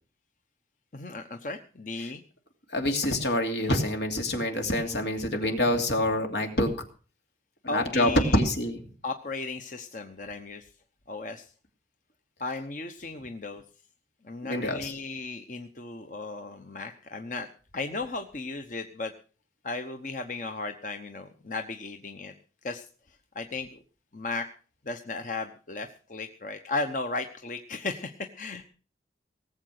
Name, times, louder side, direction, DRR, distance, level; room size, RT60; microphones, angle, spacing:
voice 1, 0.9-2.2 7.7-8.4 9.0-10.7 11.1-11.5 12.4-13.6 14.2-17.5 17.7-19.1 19.6-22.3 22.6-22.9 23.3-23.8 24.1-24.5 24.8-28.6, left 3 dB, 45° left, 6 dB, 1.0 m, -35 dB
voice 2, 2.7-6.7 7.7-8.8 14.4-14.9, left 1 dB, 80° left, 4 dB, 2.7 m, -26 dB
18.5 x 7.8 x 6.5 m, 0.39 s
head